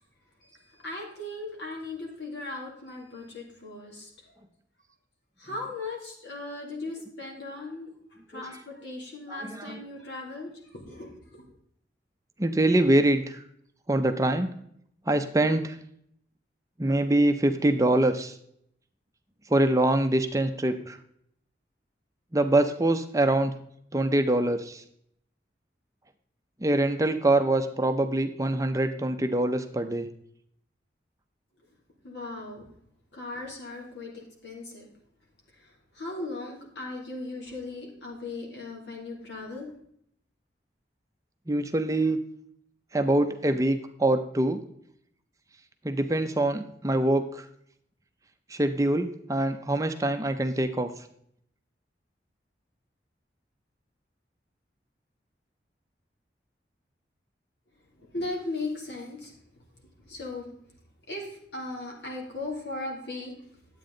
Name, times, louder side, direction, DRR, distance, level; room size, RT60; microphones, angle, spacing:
voice 1, 0.4-4.3 5.4-7.9 8.3-11.4 32.0-32.6 33.1-34.9 35.6-39.7 58.0-59.3 60.1-60.5 61.1-63.3, left 2 dB, 75° left, -1 dB, 3.0 m, -38 dB
voice 2, 9.3-9.8 12.4-13.4 13.9-14.5 15.1-15.8 16.8-18.4 19.5-21.0 22.3-23.5 23.9-24.8 26.6-30.1 41.5-42.2 42.9-44.6 45.8-47.5 48.5-50.9, right 1 dB, 20° right, 7 dB, 0.5 m, -24 dB
10.5 x 8.4 x 3.8 m, 0.68 s
head